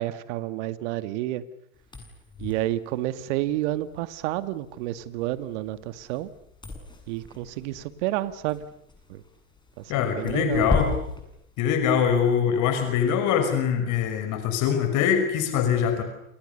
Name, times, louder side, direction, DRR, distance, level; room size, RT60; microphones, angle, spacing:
voice 1, 0.0-1.4 2.4-6.3 7.1-8.7 9.1-9.2 9.8-10.7, right 15 dB, 55° right, 13 dB, 2.1 m, -30 dB
sound 1, 1.8-12.3, left 3 dB, 10° left, 7.9 m, -36 dB
voice 2, 9.9-10.9 11.6-16.0, left 8 dB, 45° left, 7 dB, 5.7 m, -23 dB
30.0 x 28.5 x 6.9 m, 0.75 s
hypercardioid pair, 85°, 41 cm